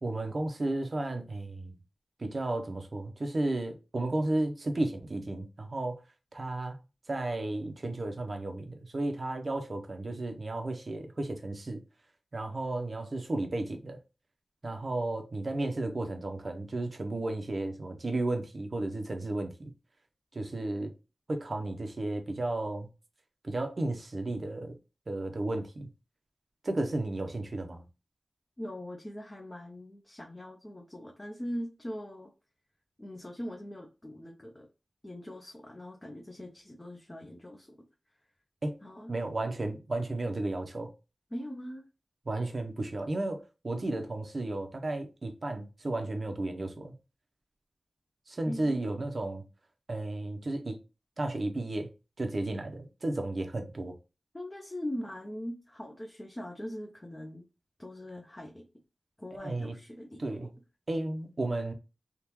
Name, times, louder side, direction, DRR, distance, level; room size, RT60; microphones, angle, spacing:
voice 1, 0.0-1.8 2.2-6.0 6.3-6.8 7.1-11.8 12.3-14.0 14.6-19.7 20.3-20.9 21.3-22.9 23.4-24.7 25.1-25.9 26.6-27.8 38.6-38.8 39.1-40.9 42.3-46.9 48.3-49.4 49.9-50.8 51.2-51.9 52.2-53.9 59.4-59.7 60.2-60.5 60.9-61.7, right 2 dB, 50° right, 0.8 m, -33 dB
voice 2, 28.6-32.3 33.0-34.7 35.0-37.8 38.8-39.1 41.3-41.8 48.4-48.8 54.3-57.4 57.8-58.6 59.2-60.5, equal, 20° left, 0.7 m, -41 dB
3.6 x 2.4 x 2.9 m
wide cardioid pair, 85°, 0 cm